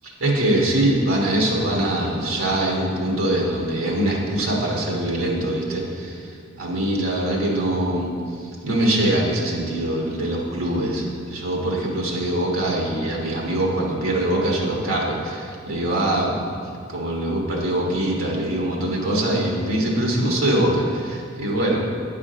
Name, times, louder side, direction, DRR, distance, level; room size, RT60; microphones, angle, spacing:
voice 1, 0.2-6.3 6.6-8.1 8.6-16.5 16.9-21.8, right 1 dB, 85° right, -2 dB, 1.5 m, -23 dB
8.4 x 5.0 x 5.0 m, 2.3 s
head